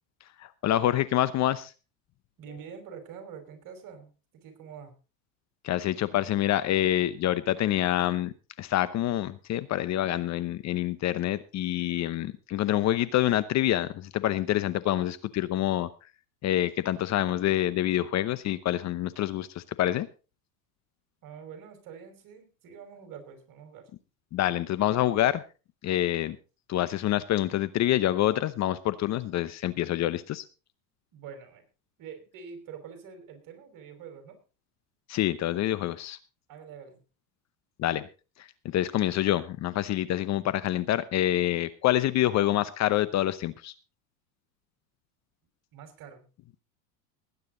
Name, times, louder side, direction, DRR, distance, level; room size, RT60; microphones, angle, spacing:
voice 1, 0.4-1.7 5.6-15.9 16.4-20.1 24.3-25.4 25.8-26.4 26.7-30.4 35.1-36.2 37.8-38.1 38.7-43.7, left 13 dB, 40° left, 15 dB, 0.8 m, -26 dB
voice 2, 2.4-4.9 21.2-23.9 31.1-31.6 32.0-34.4 36.5-37.0 45.7-46.3, right 7 dB, 50° right, 6 dB, 5.2 m, -45 dB
19.5 x 9.4 x 3.9 m, 0.34 s
supercardioid pair, 110°, 43 cm